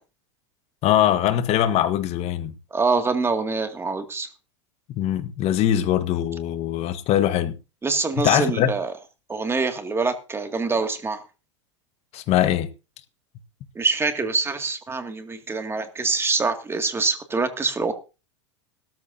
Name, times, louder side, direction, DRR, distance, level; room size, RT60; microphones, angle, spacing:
voice 1, 0.8-2.5 4.9-7.6 8.2-8.7 12.1-12.7, left 11 dB, 45° left, 1.5 m, -22 dB
voice 2, 2.7-4.3 7.8-8.9 9.3-11.2 13.8-17.9, right 4 dB, 15° right, 2.2 m, -25 dB
17.0 x 13.5 x 2.8 m
hypercardioid pair, 100°, 16 cm